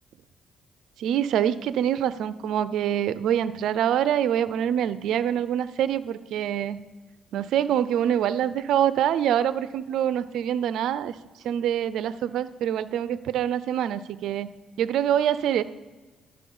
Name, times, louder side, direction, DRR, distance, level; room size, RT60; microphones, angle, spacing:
voice 1, 1.0-6.8 7.3-11.2 11.4-14.5 14.8-15.6, right 10 dB, 80° right, 15 dB, 0.5 m, -25 dB
12.0 x 6.7 x 5.4 m, 1.3 s
cardioid pair, 90°, 0 cm